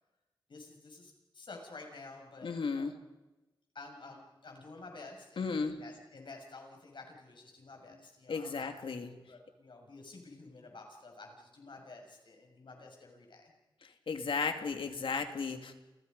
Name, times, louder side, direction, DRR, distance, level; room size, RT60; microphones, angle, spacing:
voice 1, 0.5-2.9 3.7-8.7 9.1-13.5, left 3 dB, 65° left, 2 dB, 6.9 m, -51 dB
voice 2, 2.4-2.9 5.4-5.8 8.3-9.1 13.8-15.7, left 5 dB, 85° left, 6 dB, 2.5 m, -35 dB
30.0 x 29.0 x 5.5 m, 1.0 s
wide cardioid pair, 80°, 9 cm